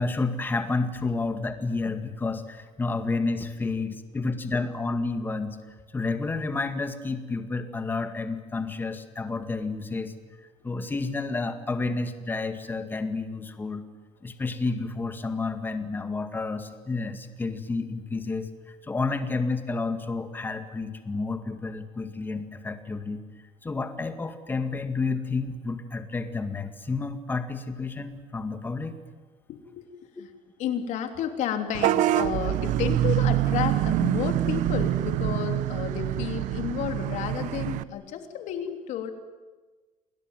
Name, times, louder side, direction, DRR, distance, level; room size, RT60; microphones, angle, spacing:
voice 1, 0.0-5.6 5.9-10.1 10.6-13.8 14.2-23.2 23.6-28.9 30.2-30.3 38.2-38.3, left 3 dB, 15° left, 8 dB, 2.0 m, -30 dB
voice 2, 29.5-30.3 30.6-39.1, left 9 dB, 55° left, 6 dB, 3.3 m, -31 dB
Vehicle horn car horn honking / Bus, 31.7-37.8, right 13 dB, 60° right, 0.9 m, -25 dB
29.0 x 20.0 x 9.3 m, 1.3 s
cardioid pair, 160°, 15 cm